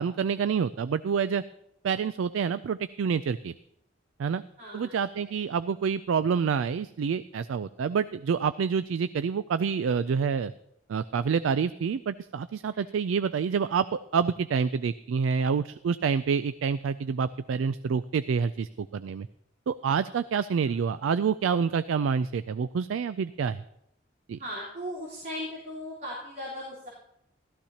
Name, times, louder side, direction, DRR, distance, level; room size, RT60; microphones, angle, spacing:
voice 1, 0.0-1.4 1.8-3.5 4.2-4.4 4.7-10.5 10.9-19.3 19.7-23.6 24.3-24.4, right 6 dB, 90° right, 14 dB, 0.3 m, -27 dB
voice 2, 4.6-4.9 12.7-12.9 24.4-26.9, equal, 45° right, -7 dB, 3.7 m, -37 dB
16.0 x 13.5 x 2.8 m, 0.78 s
head